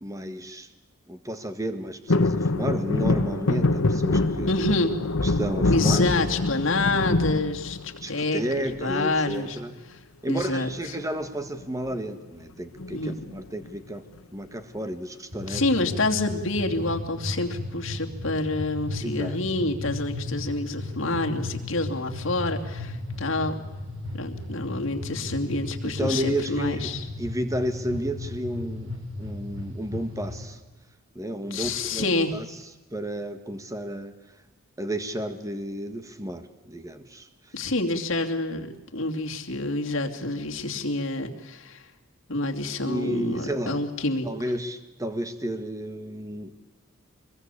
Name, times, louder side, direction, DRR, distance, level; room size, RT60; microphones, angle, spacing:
voice 1, 0.0-0.7 1.1-4.5 5.2-6.4 8.0-9.7 10.2-14.0 14.3-15.6 19.0-19.4 25.8-26.9 27.2-28.9 29.2-30.6 31.2-32.5 32.9-34.1 34.8-37.6 42.8-43.8 44.2-46.5, right 1 dB, 15° right, 9 dB, 1.7 m, -32 dB
sound 1, 2.1-8.3 8.7-9.3 10.6-11.0 11.3-11.4 11.6-11.9 12.8-13.7 14.2-14.3, left 2 dB, 80° left, 1.1 m, -25 dB
voice 2, 4.5-4.9 5.7-9.6 9.9-10.0 10.3-11.0 12.9-13.1 15.5-23.5 24.1-27.1 31.5-32.3 37.5-41.8 42.3-44.3, left 2 dB, 65° left, 3 dB, 2.8 m, -27 dB
sound 2, 15.3-30.5, left 1 dB, 60° right, 6.6 m, -35 dB
25.0 x 21.5 x 8.5 m, 1.1 s
head